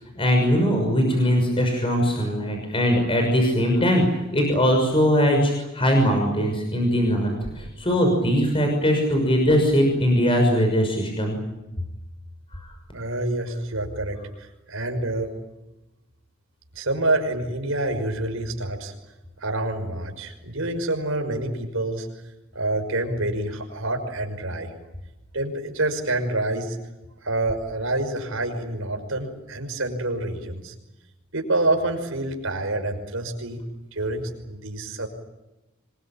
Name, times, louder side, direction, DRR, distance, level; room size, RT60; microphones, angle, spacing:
voice 1, 0.2-4.0 4.3-11.4, equal, 25° left, 3 dB, 6.2 m, -21 dB
voice 2, 12.9-15.3 16.8-18.9 19.4-22.1 22.5-24.7 25.3-26.8 27.2-30.7 31.3-33.6 33.9-35.1, right 2 dB, 70° right, 5 dB, 5.7 m, -27 dB
26.5 x 22.5 x 8.9 m, 1.0 s
head